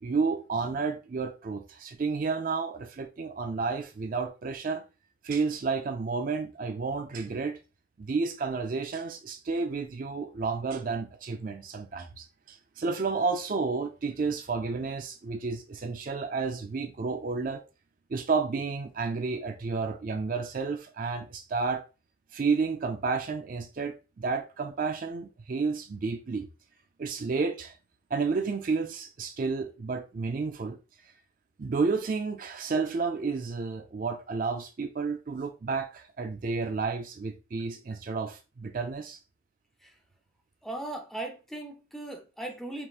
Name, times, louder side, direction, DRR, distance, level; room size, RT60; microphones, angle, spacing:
voice 1, 0.0-4.8 5.2-7.6 8.0-17.6 18.1-21.8 22.3-26.5 27.0-27.7 28.1-30.8 31.6-39.2, right 4 dB, 45° right, 0.4 m, -31 dB
voice 2, 40.6-42.9, right 2 dB, ahead, 0.6 m, -38 dB
5.3 x 3.0 x 2.4 m
head